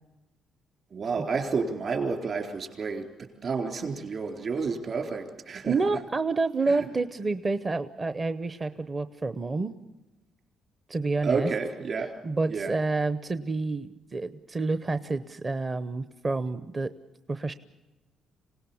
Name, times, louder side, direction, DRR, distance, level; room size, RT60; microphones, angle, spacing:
voice 1, 0.9-3.1 3.4-5.7 6.7-6.8 11.2-12.2 12.5-12.8, right 4 dB, 50° right, 3 dB, 3.9 m, -30 dB
voice 2, 5.6-9.7 10.9-11.5 12.2-16.9 17.3-17.5, right 3 dB, 30° right, 11 dB, 0.8 m, -28 dB
26.5 x 18.0 x 7.1 m, 1.1 s
cardioid pair, 90°, 0 cm